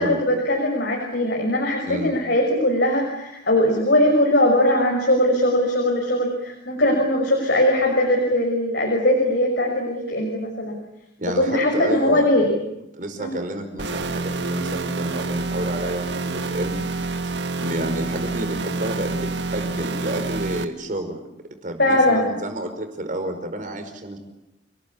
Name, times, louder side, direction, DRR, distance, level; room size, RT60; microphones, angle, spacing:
voice 1, 0.0-10.8 11.4-12.5 13.2-13.3 21.8-22.3, left 1 dB, 70° left, 0 dB, 6.2 m, -20 dB
voice 2, 11.2-12.3 13.0-16.8 17.6-21.2 21.6-24.2, right 1 dB, 50° right, 6 dB, 5.2 m, -30 dB
sound 1, 13.8-20.6, right 3 dB, 75° right, 1.6 m, -28 dB
29.5 x 20.0 x 8.6 m, 0.87 s
head